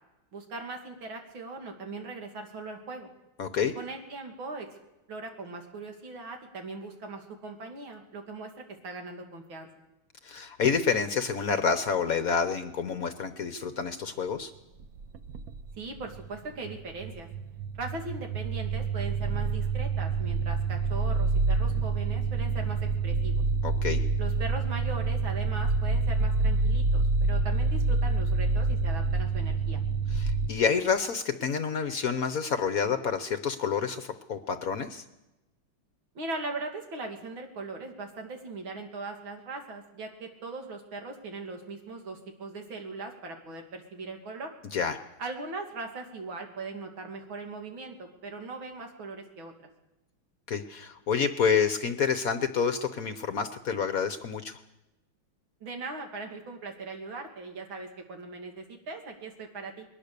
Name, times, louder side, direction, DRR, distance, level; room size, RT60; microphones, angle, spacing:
voice 1, 0.3-3.1 3.8-4.7 5.1-8.5 8.8-9.7 15.8-17.3 17.7-23.3 24.2-29.8 36.1-44.5 45.2-49.5 55.6-59.9, right 3 dB, 75° right, 3 dB, 3.2 m, -39 dB
voice 2, 3.4-3.7 10.2-14.5 23.6-24.0 30.1-35.0 44.7-45.0 50.5-54.6, left 6 dB, 55° left, 10 dB, 1.1 m, -28 dB
sound 1, 14.8-16.4 16.6-30.5, right 3 dB, 55° right, 1.1 m, -27 dB
21.5 x 19.0 x 6.8 m, 0.97 s
omnidirectional pair, 2.2 m